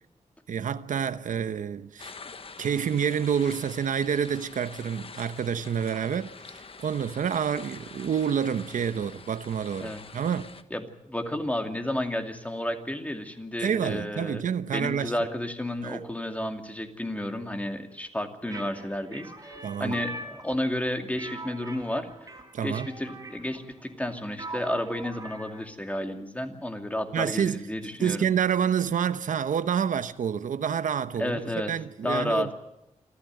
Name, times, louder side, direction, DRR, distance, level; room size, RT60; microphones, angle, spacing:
voice 1, 0.5-2.1 2.6-10.5 13.6-15.1 15.8-16.0 19.6-20.0 22.5-22.9 27.1-27.7 28.0-31.4 31.7-32.5, right 8 dB, 85° right, 0.9 m, -28 dB
sound 1, 2.0-10.6, left 4 dB, 45° left, 1.2 m, -46 dB
voice 2, 10.7-14.4 14.7-22.3 22.6-28.3 31.2-31.7 32.0-32.5, left 1 dB, 10° left, 2.5 m, -31 dB
sound 2, 18.4-25.6, right 2 dB, 25° right, 3.9 m, -43 dB
27.5 x 13.0 x 9.1 m
wide cardioid pair, 115°, 13 cm